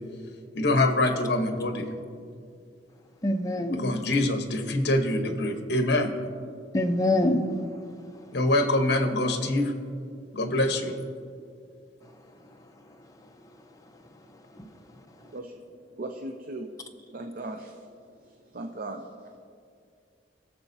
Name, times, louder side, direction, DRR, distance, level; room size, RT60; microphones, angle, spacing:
voice 1, 0.5-1.9 3.8-6.1 8.3-9.7 10.3-10.9, left 1 dB, 60° left, 1.0 m, -24 dB
voice 2, 3.2-3.9 6.7-8.4 12.0-15.3, left 1 dB, 20° left, 0.6 m, -30 dB
voice 3, 15.2-19.4, right 2 dB, 50° right, 0.6 m, -39 dB
21.0 x 7.0 x 2.7 m
head